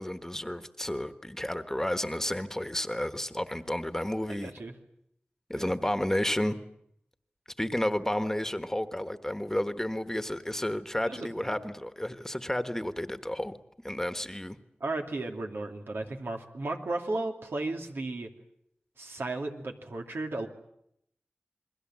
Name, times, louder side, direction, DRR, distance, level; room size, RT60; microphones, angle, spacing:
voice 1, 0.0-4.5 5.5-6.6 7.6-13.5 13.8-14.6, left 1 dB, 10° left, 10 dB, 1.3 m, -31 dB
voice 2, 4.4-4.7 5.5-5.7 11.1-11.6 14.8-18.3 19.0-20.5, right 2 dB, 90° right, 3 dB, 2.7 m, -34 dB
28.5 x 21.5 x 7.6 m, 0.74 s
wide cardioid pair, 75°, 4 cm